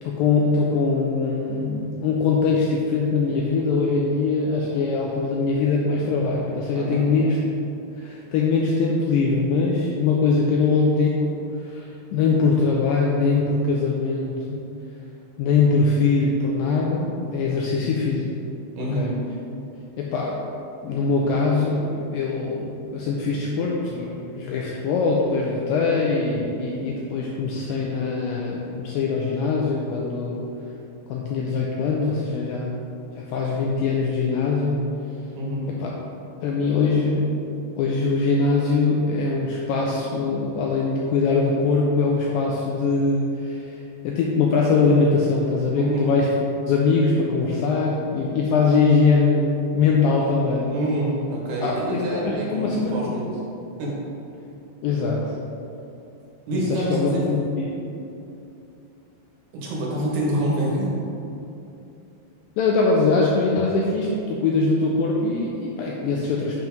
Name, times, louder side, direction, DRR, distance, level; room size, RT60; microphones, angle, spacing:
voice 1, 0.0-7.4 8.0-11.1 11.6-14.6 15.4-18.3 19.0-19.1 20.0-20.4 20.8-30.5 31.1-32.8 33.2-34.8 35.7-35.9 36.4-37.3 37.8-46.3 46.7-49.5 49.7-50.7 51.6-53.0 54.8-55.3 56.5-57.7 62.6-66.6, left 4 dB, 85° left, -3 dB, 2.0 m, -22 dB
voice 2, 6.7-7.1 18.8-19.2 35.4-35.7 45.7-46.1 50.7-53.3 53.8-54.0 56.5-57.2 59.6-60.9, right 1 dB, 75° right, -4 dB, 3.3 m, -26 dB
7.6 x 4.5 x 5.3 m, 2.8 s
omnidirectional pair, 4.7 m